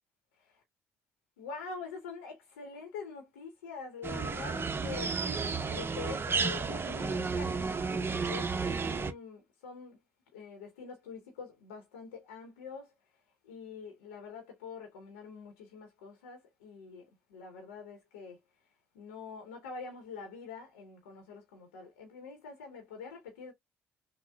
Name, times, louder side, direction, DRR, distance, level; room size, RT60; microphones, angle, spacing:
voice 1, 1.4-10.0 10.3-12.9 13.4-18.4 18.9-23.5, left 5 dB, 90° left, 0.7 m, -45 dB
sound 1, 4.0-9.1, right 4 dB, 35° right, 0.7 m, -32 dB
5.7 x 2.0 x 2.2 m
hypercardioid pair, 50°, 7 cm